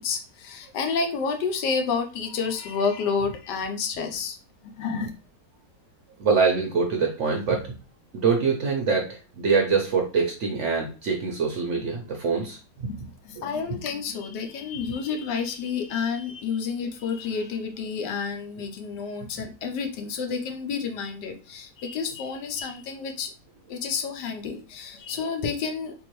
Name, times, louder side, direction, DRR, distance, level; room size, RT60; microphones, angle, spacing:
voice 1, 0.0-4.4 4.6-5.2 12.9-23.3 23.7-25.9, left 5 dB, 85° left, 6 dB, 1.3 m, -30 dB
voice 2, 6.2-7.7 8.1-12.9, right 5 dB, 65° right, 1 dB, 0.7 m, -24 dB
3.5 x 2.9 x 3.0 m, 0.33 s
omnidirectional pair, 1.8 m